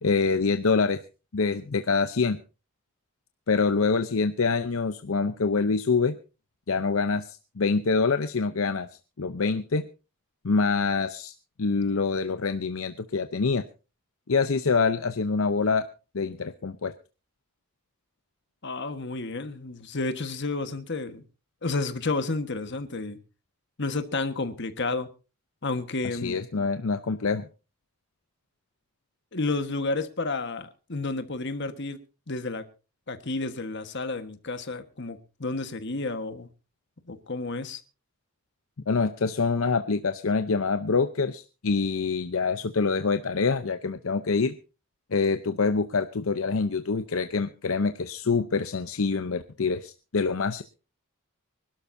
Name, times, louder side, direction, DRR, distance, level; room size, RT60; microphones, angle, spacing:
voice 1, 0.0-1.0 1.3-2.4 3.5-6.2 6.7-8.9 9.2-9.8 10.4-11.3 11.6-13.6 14.3-15.9 16.1-16.9 26.1-27.5 38.9-44.6 45.1-50.6, left 4 dB, 75° left, 0.7 m, -25 dB
voice 2, 18.6-21.2 21.6-23.2 23.8-25.1 25.6-26.4 29.3-32.0 32.3-32.6 33.1-36.5 37.1-37.8, left 3 dB, 55° left, 1.4 m, -31 dB
24.5 x 12.5 x 2.7 m
head